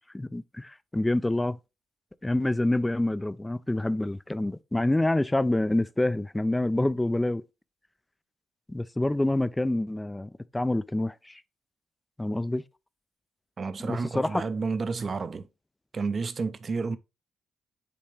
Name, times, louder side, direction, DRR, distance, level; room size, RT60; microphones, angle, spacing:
voice 1, 0.1-1.6 2.2-7.4 8.7-11.4 12.2-12.6 13.8-14.4, left 1 dB, 10° left, 0.4 m, -27 dB
voice 2, 13.6-15.5 15.9-17.0, right 4 dB, 45° right, 0.7 m, -30 dB
8.6 x 3.3 x 3.3 m
cardioid pair, 70°, 0 cm